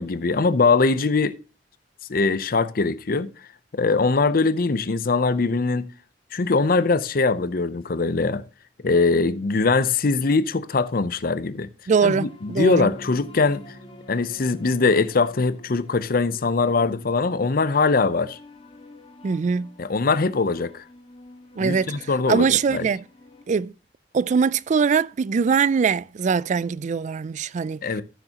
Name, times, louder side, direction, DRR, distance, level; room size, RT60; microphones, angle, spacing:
voice 1, 0.0-1.4 2.1-3.3 3.7-5.8 6.3-8.4 8.8-11.7 12.0-13.6 14.1-18.4 19.8-20.8 21.6-22.9 27.8-28.0, left 4 dB, 55° left, 0.6 m, -22 dB
sound 1, 11.9-23.5, left 2 dB, 30° left, 1.6 m, -48 dB
voice 2, 11.9-12.9 19.2-19.7 21.6-23.0 23.5-23.7 24.1-27.8, right 5 dB, 45° right, 0.3 m, -22 dB
Bass guitar, 12.6-16.3, right 1 dB, 15° right, 1.2 m, -46 dB
13.5 x 6.6 x 2.9 m
head